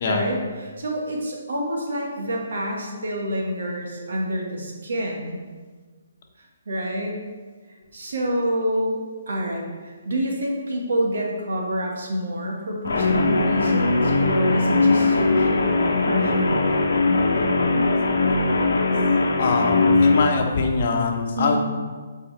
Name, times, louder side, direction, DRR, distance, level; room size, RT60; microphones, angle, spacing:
voice 1, 0.0-5.4 6.7-7.2 7.9-15.8 16.1-16.6 21.4-21.6, equal, 65° right, -1 dB, 1.7 m, -27 dB
Guitar, 12.8-20.3, left 3 dB, 75° left, 0.9 m, -20 dB
voice 2, 19.4-21.6, left 4 dB, 50° left, 2 dB, 1.0 m, -23 dB
8.5 x 4.6 x 3.4 m, 1.4 s
figure-of-eight pair, 140°, 0 cm